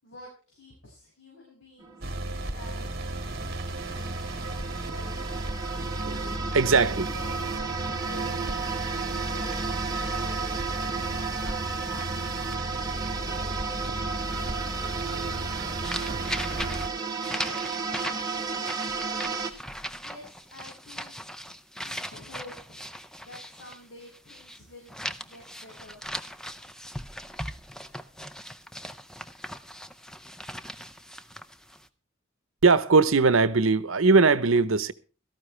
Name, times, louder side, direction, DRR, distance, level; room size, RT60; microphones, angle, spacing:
voice 1, 0.0-2.1 2.4-2.9 3.9-5.1 6.7-8.6 8.9-10.8 11.4-13.6 14.0-16.0 16.7-19.4 20.0-21.2 21.8-22.8 23.2-25.0 25.2-26.0, left 2 dB, 70° left, 6.1 m, -49 dB
sound 1, 1.8-19.5, right 4 dB, 20° right, 1.3 m, -33 dB
sound 2, 2.0-16.9, right 1 dB, 50° right, 1.7 m, -35 dB
voice 2, 6.0-7.1 32.6-34.9, right 4 dB, 80° right, 0.9 m, -20 dB
sound 3, 15.8-24.6 24.9-31.9, equal, 5° left, 0.6 m, -39 dB
17.5 x 13.5 x 3.3 m
head